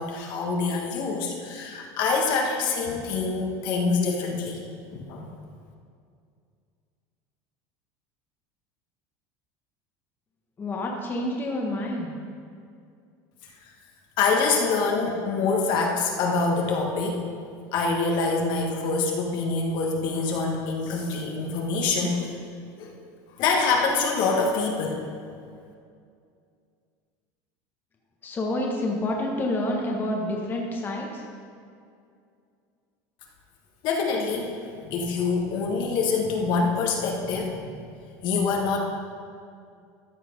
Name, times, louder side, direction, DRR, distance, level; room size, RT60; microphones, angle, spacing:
voice 1, 0.0-4.6 4.9-5.3 14.2-17.2 17.7-22.3 22.8-23.0 23.4-25.0 33.8-34.5 34.8-37.7 38.2-38.8, left 4 dB, 55° left, 1 dB, 1.6 m, -25 dB
voice 2, 10.6-12.1 28.2-31.2, left 1 dB, 25° left, -1 dB, 1.3 m, -28 dB
13.5 x 5.8 x 5.4 m, 2.3 s
supercardioid pair, 130°, 9 cm